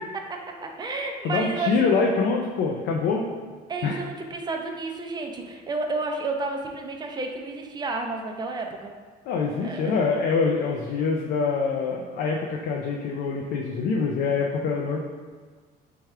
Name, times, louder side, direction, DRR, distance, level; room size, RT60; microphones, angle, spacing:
voice 1, 0.3-1.8 3.7-8.9 9.6-10.0, right 3 dB, 25° right, 2 dB, 0.5 m, -31 dB
voice 2, 1.2-3.3 3.8-4.0 9.3-15.0, left 4 dB, 75° left, 0 dB, 0.4 m, -25 dB
3.4 x 2.3 x 4.3 m, 1.5 s
cardioid pair, 110°, 17 cm